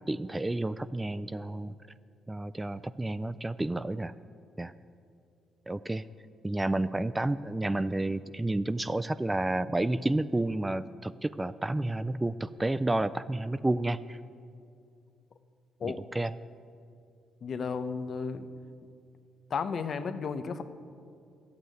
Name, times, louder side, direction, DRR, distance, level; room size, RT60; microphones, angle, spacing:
voice 1, 0.1-1.7 2.3-4.1 4.6-4.7 5.7-6.0 6.4-14.2 15.9-16.3, right 2 dB, 15° right, 14 dB, 0.4 m, -30 dB
voice 2, 17.4-18.5 19.5-20.6, left 5 dB, 50° left, 10 dB, 0.8 m, -33 dB
12.0 x 8.7 x 9.2 m, 2.5 s
cardioid pair, 90°, 0 cm